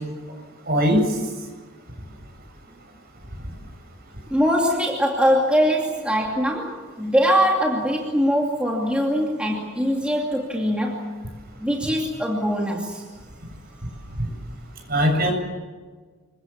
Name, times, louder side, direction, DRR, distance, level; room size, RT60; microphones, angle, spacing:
voice 1, 0.7-1.1 14.9-15.3, equal, 45° right, 3 dB, 7.5 m, -19 dB
voice 2, 4.3-11.1 11.6-13.0, equal, 5° right, -1 dB, 2.6 m, -22 dB
27.5 x 23.0 x 7.3 m, 1.5 s
head